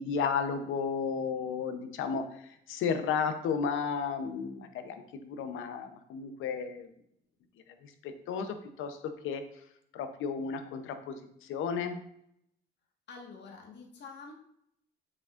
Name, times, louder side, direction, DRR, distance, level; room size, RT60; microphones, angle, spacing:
voice 1, 0.0-2.2 2.7-6.9 7.8-9.0 9.2-9.4 9.9-11.2 11.5-12.0, left 6 dB, 85° left, 8 dB, 0.8 m, -33 dB
voice 2, 13.1-14.3, left 4 dB, 60° left, 1 dB, 1.6 m, -47 dB
7.5 x 5.9 x 2.5 m, 0.74 s
cardioid pair, 90°, 20 cm